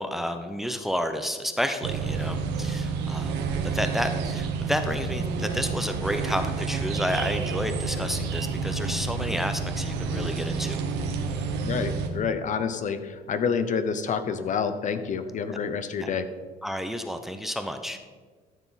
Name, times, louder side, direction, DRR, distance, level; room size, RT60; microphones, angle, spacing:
voice 1, 0.0-10.8 16.0-16.1 16.6-18.0, equal, ahead, 7 dB, 0.7 m, -31 dB
sound 1, 1.8-12.1, right 4 dB, 85° right, 1.1 m, -29 dB
voice 2, 11.6-16.3, left 6 dB, 50° left, 10 dB, 0.7 m, -28 dB
13.0 x 6.9 x 4.1 m, 1.4 s
cardioid pair, 110°, 17 cm